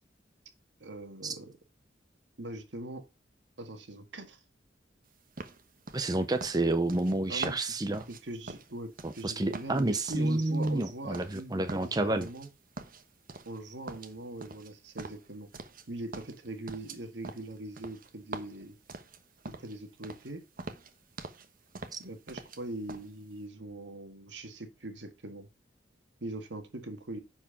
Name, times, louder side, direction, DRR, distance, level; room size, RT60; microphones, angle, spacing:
voice 1, 0.8-1.5 2.4-3.0 3.6-4.4 7.3-7.6 7.8-12.5 13.5-15.5 15.9-18.8 19.5-20.4 22.0-25.5 26.2-27.2, right 2 dB, 75° right, 1.8 m, -41 dB
sound 1, 5.4-9.3 9.5-11.4 11.7-12.5 12.8-13.6 13.9-15.9 16.1-19.8 20.0-20.3 20.6-21.5 21.7-22.6 22.9-23.1, right 3 dB, 50° right, 1.1 m, -44 dB
voice 2, 5.9-8.0 9.0-12.3 21.9-22.0, right 2 dB, 20° right, 0.7 m, -29 dB
10.5 x 4.7 x 5.7 m
head